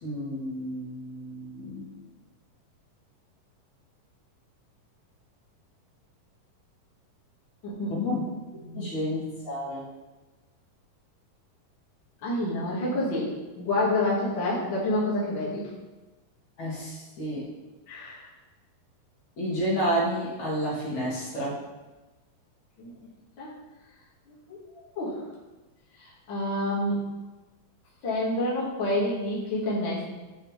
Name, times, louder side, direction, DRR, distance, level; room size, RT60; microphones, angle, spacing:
voice 1, 0.0-1.9 7.9-8.2 8.7-9.9 16.6-17.5 19.4-21.6, equal, 60° left, -7 dB, 2.8 m, -30 dB
voice 2, 7.6-8.1 8.7-8.9 12.2-13.3 13.6-15.7 17.9-18.3 22.8-22.9 23.4-23.5 24.5-24.6 25.0-25.2 26.0-27.0 28.0-30.1, left 1 dB, 45° left, -8 dB, 2.1 m, -28 dB
10.0 x 4.3 x 3.2 m, 1.2 s
omnidirectional pair, 3.9 m